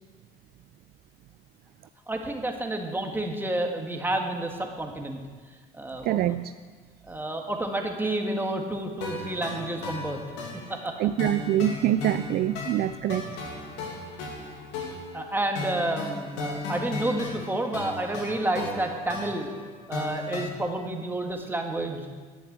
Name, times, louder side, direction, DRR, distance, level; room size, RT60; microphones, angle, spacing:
voice 1, 2.1-5.2 5.7-6.2 7.1-10.2 10.7-11.0 15.1-19.5 19.9-22.1, right 1 dB, 10° right, 2 dB, 1.9 m, -30 dB
voice 2, 6.0-6.5 11.0-13.4, right 12 dB, 55° right, 12 dB, 0.4 m, -25 dB
sound 1, 9.0-20.5, left 3 dB, 80° left, 2.6 m, -36 dB
10.5 x 7.3 x 8.2 m, 1.5 s
supercardioid pair, 80°, 18 cm